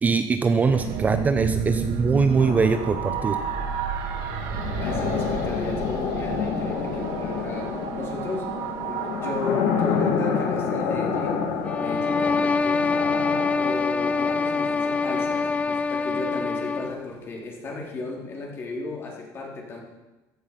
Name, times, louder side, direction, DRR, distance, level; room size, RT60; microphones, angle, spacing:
voice 1, 0.0-3.4, right 4 dB, 20° right, 8 dB, 0.7 m, -22 dB
sound 1, 0.6-11.0, right 7 dB, 75° right, 2.2 m, -31 dB
sound 2, 2.4-16.2, left 6 dB, 85° left, 2.1 m, -29 dB
voice 2, 4.8-11.4 11.8-13.0 13.6-19.8, left 3 dB, 30° left, -1 dB, 3.7 m, -34 dB
sound 3, 11.6-17.0, left 4 dB, 15° left, 0.4 m, -25 dB
15.0 x 11.0 x 5.8 m, 1.1 s
cardioid pair, 145°, 8 cm